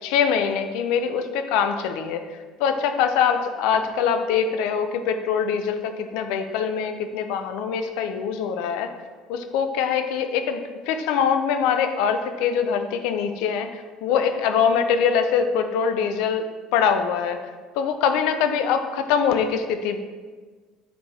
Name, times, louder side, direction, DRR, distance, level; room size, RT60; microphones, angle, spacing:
voice 1, 0.0-2.2 2.6-8.9 9.3-16.5 16.7-17.4 17.8-20.0, left 7 dB, 60° left, 8 dB, 0.5 m, -23 dB
7.9 x 4.5 x 3.2 m, 1.4 s
figure-of-eight pair, 60°, 0 cm